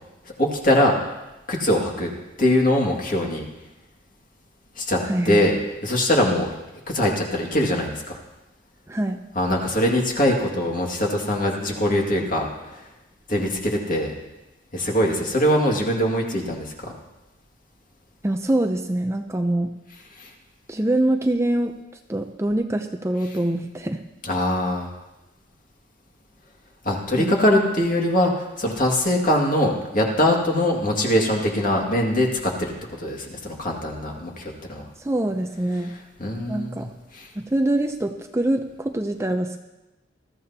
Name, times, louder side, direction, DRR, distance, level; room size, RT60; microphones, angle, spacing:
voice 1, 0.4-1.0 1.5-2.1 2.4-3.5 4.8-5.6 5.8-6.5 6.9-8.2 9.4-12.8 13.3-14.1 14.7-16.9 20.1-20.3 24.2-24.9 26.8-34.8 36.2-36.9 37.1-37.3, left 1 dB, 45° left, 0 dB, 2.2 m, -22 dB
voice 2, 5.1-5.5 8.9-9.2 18.2-19.7 20.7-21.7 22.1-24.0 27.1-27.3 35.0-35.9 36.5-36.9 37.4-39.6, right 1 dB, 15° right, 5 dB, 0.5 m, -24 dB
21.0 x 14.0 x 2.9 m, 1.0 s
head